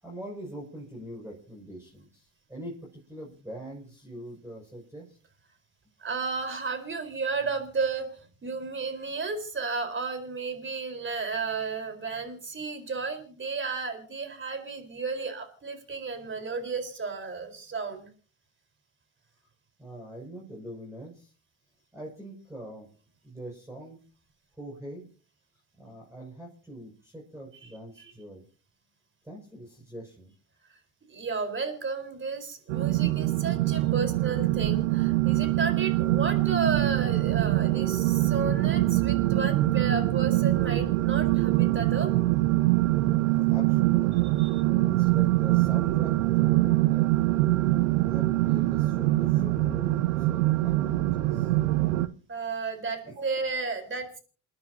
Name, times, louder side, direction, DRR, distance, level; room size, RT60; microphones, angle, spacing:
voice 1, 0.0-2.8 3.1-5.2 19.8-21.3 21.9-22.9 23.2-24.0 24.6-25.1 25.8-28.4 29.2-30.3 43.5-44.2 44.6-47.1 48.0-51.5 53.0-53.1, right 1 dB, 5° right, -2 dB, 6.3 m, -43 dB
voice 2, 6.0-18.1 27.6-27.7 28.0-28.1 30.7-30.8 31.1-42.1 44.2-44.6 52.3-54.2, right 4 dB, 30° right, 6 dB, 4.4 m, -33 dB
sound 1, 32.7-52.1, right 17 dB, 80° right, 0.8 m, -24 dB
28.5 x 11.0 x 2.8 m, 0.39 s
hypercardioid pair, 65°, 40 cm